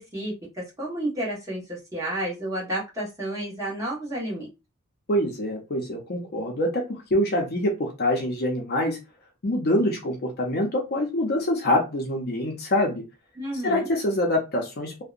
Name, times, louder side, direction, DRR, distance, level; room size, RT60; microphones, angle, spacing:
voice 1, 0.0-4.5 13.4-13.8, right 1 dB, 15° right, -6 dB, 1.2 m, -31 dB
voice 2, 5.1-9.0 9.4-13.0 13.6-15.0, left 1 dB, 45° left, 1 dB, 0.5 m, -25 dB
2.7 x 2.1 x 2.4 m, 0.27 s
head